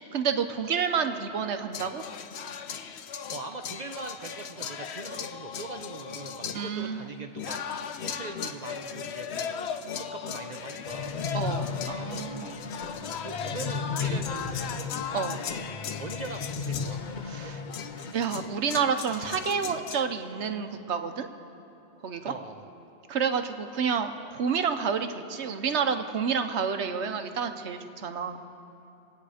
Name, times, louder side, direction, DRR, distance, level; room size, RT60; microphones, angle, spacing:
voice 1, 0.1-2.0 6.5-7.1 11.3-12.6 15.1-15.4 17.3-17.6 18.1-21.3 22.0-22.3 23.1-28.4, right 6 dB, 75° right, 7 dB, 1.1 m, -29 dB
sound 1, 1.7-20.0, left 7 dB, 70° left, 0.9 m, -37 dB
voice 2, 3.3-7.9 8.1-9.7 9.9-11.2 13.2-15.0 16.0-17.0 22.3-22.7, right 3 dB, 45° right, 6 dB, 0.6 m, -41 dB
sound 2, 10.8-18.1, left 5 dB, 50° left, 0.8 m, -35 dB
26.0 x 9.4 x 4.9 m, 2.8 s
omnidirectional pair, 1.2 m